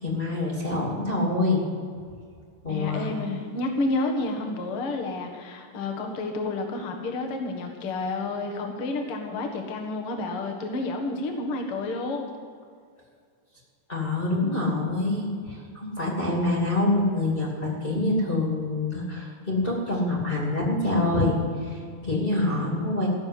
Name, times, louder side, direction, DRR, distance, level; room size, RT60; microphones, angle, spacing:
voice 1, 0.0-1.6 2.6-3.1 13.9-23.1, left 2 dB, 20° left, -4 dB, 1.7 m, -26 dB
voice 2, 2.7-12.3, left 2 dB, 65° left, 3 dB, 1.3 m, -30 dB
16.0 x 7.0 x 9.5 m, 2.2 s
omnidirectional pair, 5.1 m